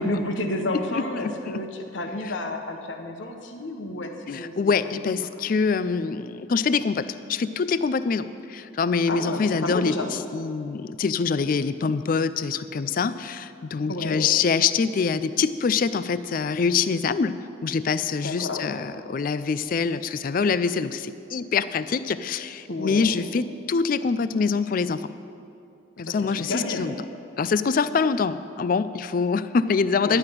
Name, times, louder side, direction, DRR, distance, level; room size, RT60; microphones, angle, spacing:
voice 1, 0.0-4.7 9.1-10.1 13.9-14.2 18.2-18.8 22.7-23.1 26.0-26.9 30.0-30.2, left 2 dB, 70° left, 4 dB, 1.1 m, -30 dB
voice 2, 0.7-1.6 4.3-9.9 10.3-17.3 17.6-25.1 26.0-27.0 27.4-30.2, left 5 dB, 45° left, 14 dB, 0.3 m, -25 dB
11.5 x 5.9 x 9.0 m, 2.5 s
head